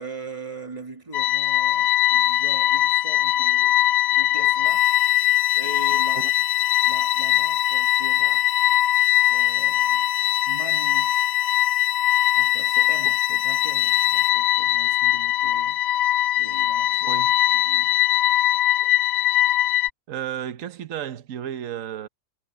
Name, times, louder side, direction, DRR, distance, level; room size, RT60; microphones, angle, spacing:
voice 1, 0.0-4.9 5.5-6.5 6.8-8.5 9.3-10.1 10.5-11.3 12.4-17.2 17.5-18.0, right 2 dB, 20° right, 2.0 m, -41 dB
sound 1, 1.1-19.9, left 13 dB, 65° left, 1.1 m, -21 dB
sound 2, 4.6-14.3, left 3 dB, 50° left, 7.3 m, -44 dB
voice 2, 20.1-22.1, right 10 dB, 60° right, 1.3 m, -33 dB
omnidirectional pair, 1.7 m